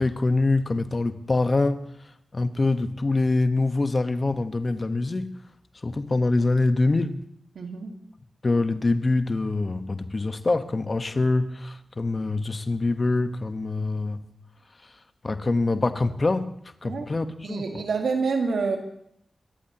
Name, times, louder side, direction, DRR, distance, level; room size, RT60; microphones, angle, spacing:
voice 1, 0.0-1.9 2.3-5.3 5.8-7.2 8.4-14.2 15.2-16.5 16.8-17.6, left 3 dB, 45° left, 1.2 m, -24 dB
voice 2, 7.6-7.9 16.8-17.1 17.4-18.8, right 4 dB, 85° right, 1.8 m, -27 dB
25.5 x 14.5 x 3.0 m
cardioid pair, 40°, 0 cm